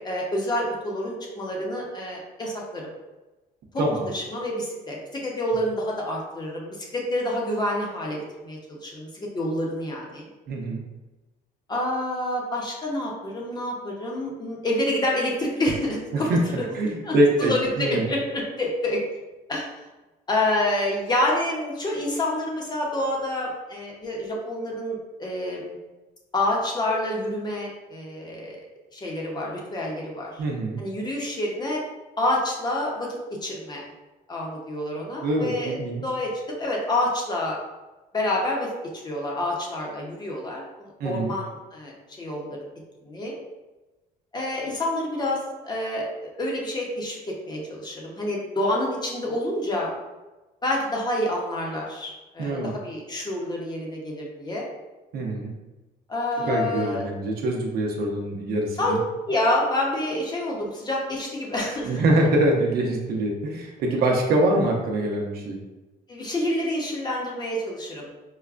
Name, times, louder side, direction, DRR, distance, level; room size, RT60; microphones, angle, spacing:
voice 1, 0.0-2.9 3.7-10.3 11.7-16.3 16.6-19.0 19.5-19.7 20.3-25.7 26.3-28.6 28.9-30.4 30.8-31.8 32.2-33.1 33.4-33.8 34.3-35.8 36.0-37.6 38.1-42.6 43.0-43.3 44.3-47.2 47.5-49.9 50.6-54.7 56.1-57.0 58.8-59.0 59.2-62.0 66.1-68.1, left 1 dB, 25° left, -2 dB, 0.8 m, -28 dB
voice 2, 10.5-10.8 16.1-16.4 16.7-18.0 30.4-30.8 35.2-36.0 41.0-41.3 52.4-52.7 55.1-55.5 56.5-59.0 61.8-65.6, right 1 dB, 65° right, 1 dB, 0.7 m, -24 dB
4.7 x 2.2 x 2.4 m, 1.1 s
cardioid pair, 110°, 17 cm